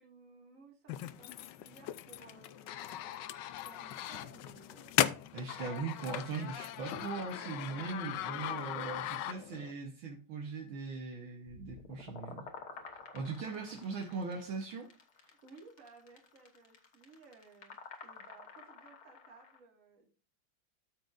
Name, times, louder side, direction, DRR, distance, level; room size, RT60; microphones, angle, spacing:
voice 1, 0.0-5.3 8.4-8.7 13.3-13.8 15.1-17.8 18.0-20.2, right 4 dB, 40° right, 2.2 m, -58 dB
sound 1, 0.9-9.7, left 12 dB, 75° left, 1.0 m, -38 dB
voice 2, 5.3-12.5 13.1-14.9, right 4 dB, 70° right, 1.8 m, -40 dB
sound 2, 11.5-19.6, left 5 dB, 55° left, 1.6 m, -51 dB
13.0 x 5.8 x 2.5 m
omnidirectional pair, 2.3 m